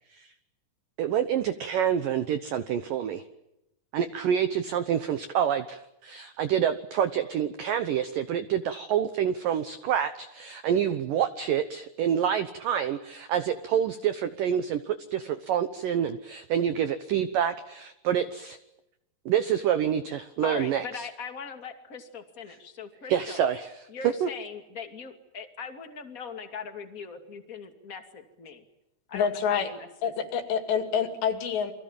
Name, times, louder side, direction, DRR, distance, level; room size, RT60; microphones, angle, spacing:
voice 1, 1.0-3.2 3.9-18.6 19.3-21.0 23.1-24.3, right 9 dB, 85° right, 11 dB, 1.9 m, -27 dB
voice 2, 20.4-23.4 23.9-28.6 29.1-30.1, left 5 dB, 25° left, 5 dB, 1.8 m, -40 dB
voice 3, 29.1-29.7 30.0-31.7, left 7 dB, 65° left, 7 dB, 4.5 m, -27 dB
29.5 x 24.0 x 7.4 m, 0.89 s
omnidirectional pair, 5.5 m